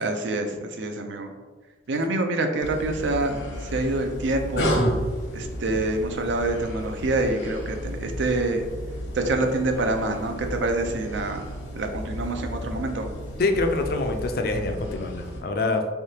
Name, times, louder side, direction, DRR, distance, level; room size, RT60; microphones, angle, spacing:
voice 1, 0.0-1.3 1.9-4.7 5.3-8.7 9.1-11.4 11.7-13.1, right 2 dB, 70° right, 5 dB, 0.5 m, -26 dB
sound 1, 2.6-15.4, equal, 85° left, 1.0 m, -32 dB
voice 2, 13.4-15.8, left 3 dB, 50° left, 5 dB, 0.4 m, -25 dB
3.7 x 3.4 x 2.8 m, 1.4 s
head